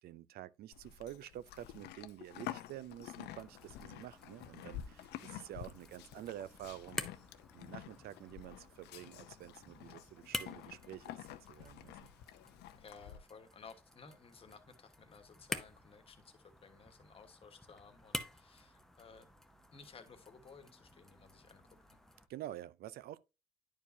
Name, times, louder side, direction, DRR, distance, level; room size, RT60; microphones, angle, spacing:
voice 1, 0.0-7.0 7.5-12.0 22.3-23.2, right 12 dB, 65° right, 0.5 m, -49 dB
Livestock farm animals working animals, 0.7-13.2, left 12 dB, 80° left, 0.6 m, -50 dB
sound 1, 3.3-22.3, left 1 dB, ahead, 0.8 m, -49 dB
voice 2, 12.8-19.3 19.7-21.6 21.9-22.0, left 5 dB, 35° left, 1.3 m, -57 dB
10.5 x 4.7 x 2.7 m
cardioid pair, 110°, 17 cm